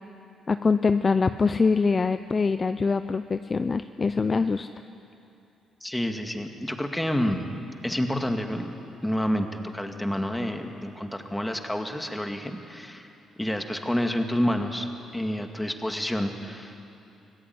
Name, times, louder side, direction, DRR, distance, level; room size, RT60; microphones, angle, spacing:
voice 1, 0.5-4.7, left 4 dB, 30° left, 10 dB, 0.6 m, -24 dB
voice 2, 5.8-7.4 7.8-8.7 9.0-9.5 9.7-13.1 13.4-14.9 15.1-16.8, equal, 5° left, 4 dB, 2.1 m, -28 dB
25.0 x 16.5 x 9.6 m, 2.8 s
cardioid pair, 90°, 0 cm